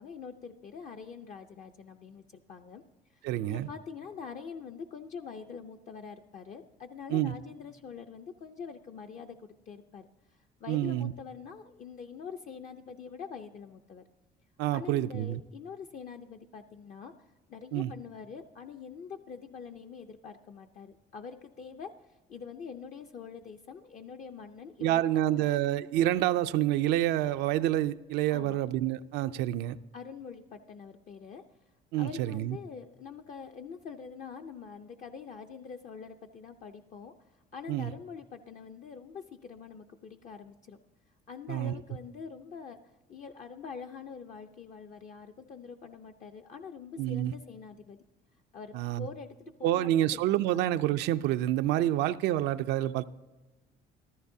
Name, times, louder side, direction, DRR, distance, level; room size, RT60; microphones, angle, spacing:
voice 1, 0.0-2.2 2.5-2.8 3.1-14.0 14.7-25.5 28.3-28.6 29.9-31.4 31.9-40.8 41.3-48.0 48.5-50.2 50.5-50.6, left 6 dB, 45° left, 5 dB, 0.6 m, -45 dB
voice 2, 3.2-3.7 7.1-7.3 10.7-11.1 14.6-15.4 17.7-17.9 24.8-29.8 31.9-32.6 37.7-37.9 41.5-41.7 47.0-47.3 48.7-49.1 49.6-53.0, right 13 dB, 90° right, 10 dB, 0.4 m, -28 dB
14.0 x 13.5 x 2.7 m, 1.1 s
cardioid pair, 110°, 17 cm